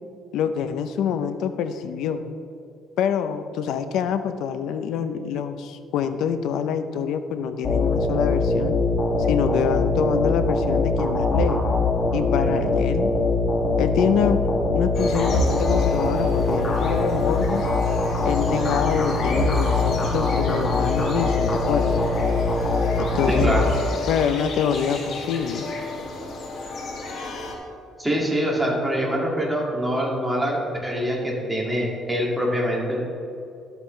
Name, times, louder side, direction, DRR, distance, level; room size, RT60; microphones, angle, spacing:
voice 1, 0.3-2.2 3.0-8.7 9.3-11.6 12.1-13.1 13.8-14.4 14.7-17.7 18.2-22.0 23.0-23.6 24.1-25.7, left 7 dB, 80° left, 10 dB, 0.5 m, -26 dB
sound 1, 7.6-24.3, left 2 dB, 30° left, 1.5 m, -22 dB
sound 2, 14.9-27.6, left 2 dB, 60° left, 1.5 m, -33 dB
voice 2, 23.3-23.7 28.0-33.0, equal, 10° right, -3 dB, 2.1 m, -24 dB
12.0 x 8.0 x 3.2 m, 2.5 s
cardioid pair, 115°, 0 cm